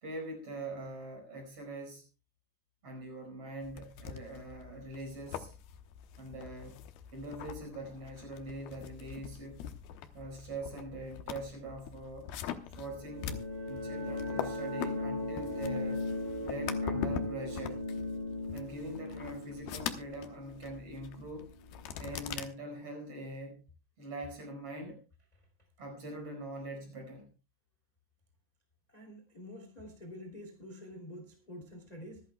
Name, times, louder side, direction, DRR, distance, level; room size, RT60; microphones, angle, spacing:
voice 1, 0.0-2.0 2.8-5.5 6.2-6.8 7.1-9.7 10.1-12.3 12.7-13.4 13.7-16.1 16.4-17.8 18.5-21.5 22.0-23.7 24.0-25.0 25.8-27.3, right 1 dB, 35° right, 3 dB, 5.5 m, -43 dB
sound 1, 3.6-22.5, left 9 dB, 75° left, 2.7 m, -44 dB
sound 2, 12.7-21.3, left 2 dB, 60° right, 4.5 m, -37 dB
voice 2, 28.9-32.2, left 1 dB, 10° left, 3 dB, 2.3 m, -47 dB
25.5 x 11.0 x 2.3 m, 0.30 s
omnidirectional pair, 4.8 m